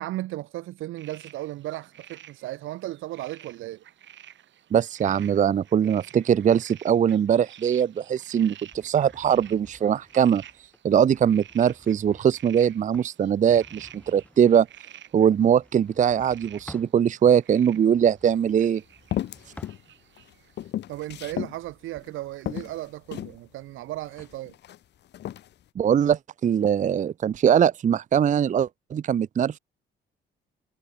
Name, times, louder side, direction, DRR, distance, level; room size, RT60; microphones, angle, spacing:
voice 1, 0.0-3.8 20.9-24.6, right 16 dB, 90° right, 1.7 m, -35 dB
sound 1, 1.0-20.7, right 11 dB, 70° right, 2.1 m, -51 dB
voice 2, 4.7-10.4 10.8-14.7 15.1-18.8 25.8-29.6, right 8 dB, 40° right, 0.5 m, -21 dB
sound 2, 8.7-17.0 17.8-20.3 20.7-24.4, left 1 dB, 5° left, 3.8 m, -53 dB
sound 3, 18.3-18.4 19.1-19.8 20.2-21.6 22.0-22.1 22.5-23.4 24.1-24.8 25.1-25.5, left 12 dB, 60° left, 0.6 m, -33 dB
cardioid pair, 90°, 20 cm